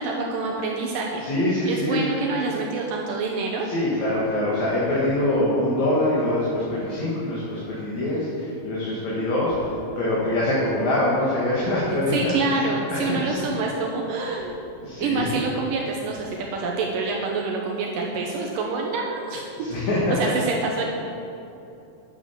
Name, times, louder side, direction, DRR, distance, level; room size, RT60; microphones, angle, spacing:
voice 1, 0.0-1.2 1.7-3.7 11.9-14.5 15.0-19.7 20.2-20.9, right 3 dB, 75° right, -1 dB, 2.5 m, -27 dB
voice 2, 1.2-2.1 3.6-13.5 14.2-14.4 14.8-15.4 19.6-20.4, left 1 dB, 55° left, -7 dB, 3.1 m, -24 dB
10.0 x 7.2 x 7.1 m, 2.8 s
omnidirectional pair, 3.9 m